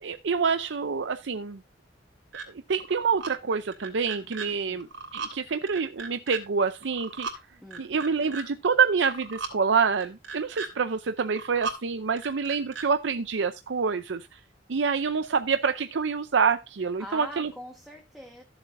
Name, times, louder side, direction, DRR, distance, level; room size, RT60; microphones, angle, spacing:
voice 1, 0.0-1.6 2.7-4.9 5.1-7.3 7.8-14.4 14.7-17.5, right 5 dB, 70° right, 0.6 m, -27 dB
sound 1, 2.3-2.5 2.8-3.3 3.7-4.5 4.8-5.3 5.7-6.4 6.8-7.4 7.7-8.4 8.9-9.5 9.9-10.7 11.2-11.8 12.2-12.9, right 4 dB, 90° right, 3.0 m, -37 dB
voice 2, 4.5-4.8 7.6-7.9 16.8-18.4, equal, ahead, 1.4 m, -43 dB
15.5 x 7.3 x 2.6 m
head